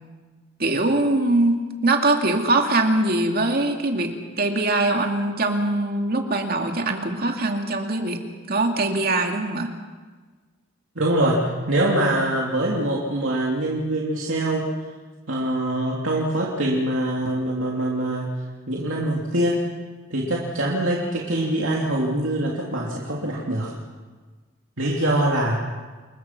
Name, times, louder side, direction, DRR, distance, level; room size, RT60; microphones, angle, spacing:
voice 1, 0.6-1.6 1.8-8.2 8.5-9.7, right 2 dB, 45° right, 3 dB, 2.5 m, -22 dB
voice 2, 10.9-14.7 15.3-18.3 18.7-19.6 20.1-23.7 24.8-25.6, right 1 dB, 65° right, -3 dB, 3.1 m, -24 dB
29.5 x 22.0 x 6.0 m, 1.4 s
head